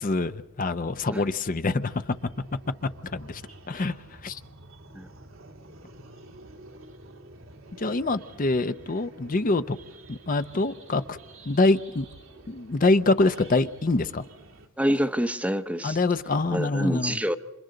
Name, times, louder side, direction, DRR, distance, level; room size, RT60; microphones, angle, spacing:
voice 1, 0.0-2.2 3.1-3.4 3.7-4.0 4.2-4.4 7.8-9.8 10.1-11.2 11.5-12.1 12.5-14.2 15.8-17.2, left 2 dB, 40° left, 0.6 m, -25 dB
sound 1, 1.8-14.7, right 1 dB, 80° right, 1.7 m, -49 dB
voice 2, 14.8-16.0 16.5-17.4, equal, 5° right, 0.7 m, -26 dB
29.0 x 26.5 x 3.9 m
head